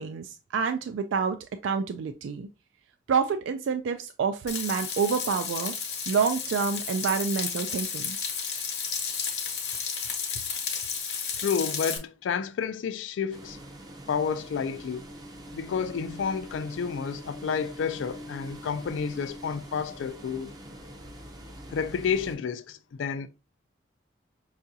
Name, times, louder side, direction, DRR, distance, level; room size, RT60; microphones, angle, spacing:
voice 1, 0.0-2.5 3.1-5.7 6.1-8.2, right 5 dB, 85° right, 0.3 m, -28 dB
Frying (food), 4.5-12.0, left 6 dB, 60° left, 0.9 m, -32 dB
voice 2, 11.4-13.6 14.1-15.0 15.5-20.5 21.7-23.3, left 6 dB, 85° left, 0.3 m, -30 dB
sound 1, 13.3-22.4, equal, 20° right, 0.5 m, -43 dB
5.5 x 2.4 x 2.7 m
head